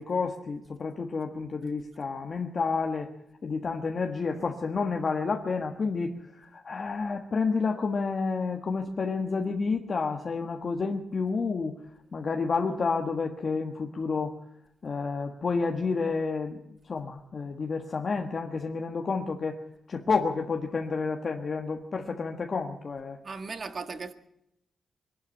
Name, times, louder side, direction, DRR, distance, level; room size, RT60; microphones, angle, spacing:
voice 1, 0.0-3.1 3.4-11.8 12.1-14.3 14.8-16.6 16.9-19.6 19.9-23.2, left 4 dB, 45° left, 1.5 m, -30 dB
voice 2, 23.2-24.1, right 4 dB, 40° right, 1.7 m, -37 dB
23.0 x 11.5 x 9.9 m
wide cardioid pair, 125°, 0 cm